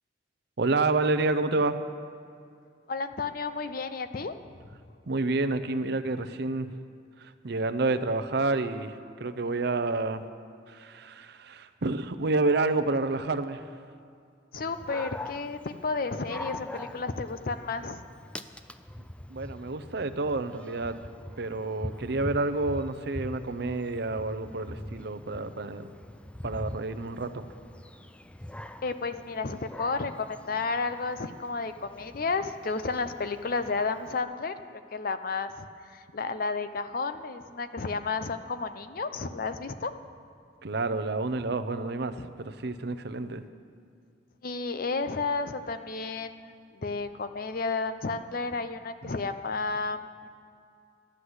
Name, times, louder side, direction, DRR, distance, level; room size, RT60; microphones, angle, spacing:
voice 1, 0.6-1.8 5.1-6.7 7.2-10.2 10.7-13.6 19.3-21.0 21.4-25.9 26.4-27.4 40.6-43.4, right 3 dB, 60° right, 9 dB, 0.6 m, -29 dB
voice 2, 2.9-4.3 14.5-18.0 28.8-39.9 42.2-42.3 44.4-50.3, left 4 dB, 50° left, 10 dB, 0.6 m, -32 dB
Dog, 14.6-34.2, left 1 dB, 5° left, 0.3 m, -43 dB
13.0 x 9.8 x 7.9 m, 2.3 s
head